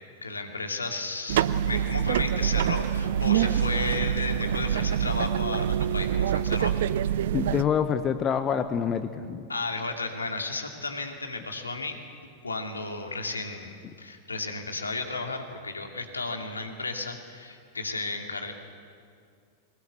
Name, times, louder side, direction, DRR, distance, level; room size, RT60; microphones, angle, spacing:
voice 1, 0.2-6.7 9.5-12.0 12.4-18.5, left 3 dB, 80° left, 3 dB, 2.5 m, -33 dB
sound 1, 1.3-7.6, right 9 dB, 55° right, 0.6 m, -25 dB
voice 2, 7.3-9.5, left 8 dB, 25° left, 10 dB, 1.0 m, -26 dB
22.5 x 19.5 x 8.3 m, 2.2 s
figure-of-eight pair, 90°, 0 cm